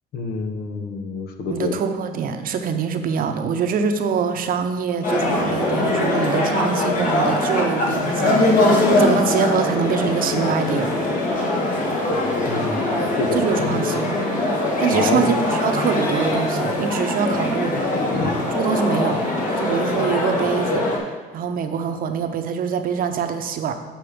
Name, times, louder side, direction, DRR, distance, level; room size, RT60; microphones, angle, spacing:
voice 1, 0.1-1.7 12.5-12.8 13.2-13.8 14.9-15.3 17.7-18.4, left 4 dB, 70° left, 6 dB, 1.0 m, -27 dB
voice 2, 1.5-10.9 13.3-14.2 14.8-19.2 19.6-20.8 21.3-23.7, right 6 dB, 55° right, 7 dB, 0.8 m, -24 dB
sound 1, 5.0-21.0, left 1 dB, 50° left, 1.9 m, -22 dB
7.8 x 5.2 x 5.1 m, 1.3 s
cardioid pair, 110°, 17 cm